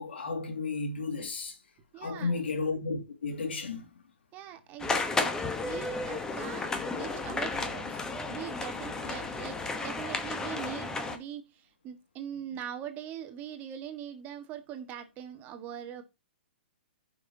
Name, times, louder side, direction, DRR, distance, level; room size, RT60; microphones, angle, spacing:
voice 1, 0.0-1.6 1.9-4.0, left 4 dB, 90° left, 2.4 m, -33 dB
voice 2, 1.9-2.4 4.3-8.0 8.3-16.0, right 9 dB, 30° right, 1.5 m, -42 dB
sound 1, 4.8-11.2, left 3 dB, 10° left, 1.1 m, -33 dB
14.5 x 5.7 x 2.8 m
hypercardioid pair, 140°, 6 cm